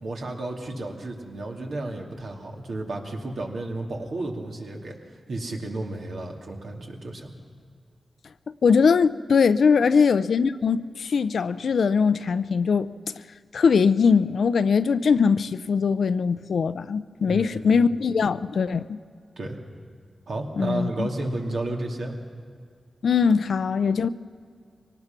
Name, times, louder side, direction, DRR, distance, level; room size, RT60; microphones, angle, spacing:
voice 1, 0.0-5.0 5.3-7.3 17.3-17.8 19.4-19.6 20.3-22.2, right 2 dB, 75° right, 2.6 m, -32 dB
voice 2, 8.6-12.9 13.5-19.0 20.6-21.1 23.0-24.1, left 5 dB, 80° left, 0.5 m, -21 dB
23.5 x 18.5 x 6.0 m
cardioid pair, 70°, 0 cm